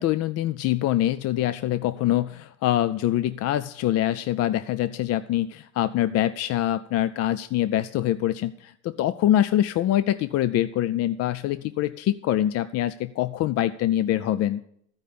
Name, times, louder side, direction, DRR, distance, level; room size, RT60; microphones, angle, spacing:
voice 1, 0.0-14.6, left 13 dB, 55° left, 14 dB, 0.4 m, -24 dB
13.0 x 5.3 x 8.5 m, 0.71 s
cardioid pair, 135°, 30 cm